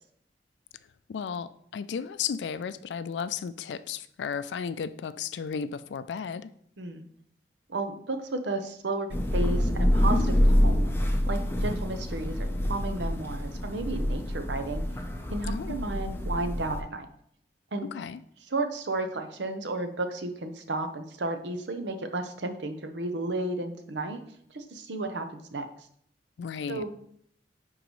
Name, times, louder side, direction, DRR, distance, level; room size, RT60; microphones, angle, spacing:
voice 1, 1.1-6.5 15.5-15.8 17.8-18.2 26.4-26.8, left 6 dB, 80° left, 14 dB, 0.3 m, -34 dB
voice 2, 6.8-7.1 7.7-11.0 11.3-14.8 15.3-17.1 17.7-17.9 18.5-24.2 24.5-25.7 26.7-26.9, right 2 dB, 85° right, 7 dB, 0.8 m, -33 dB
Thunder / Rain, 9.1-16.8, equal, 15° left, 0.6 m, -26 dB
10.0 x 3.9 x 3.1 m, 0.67 s
head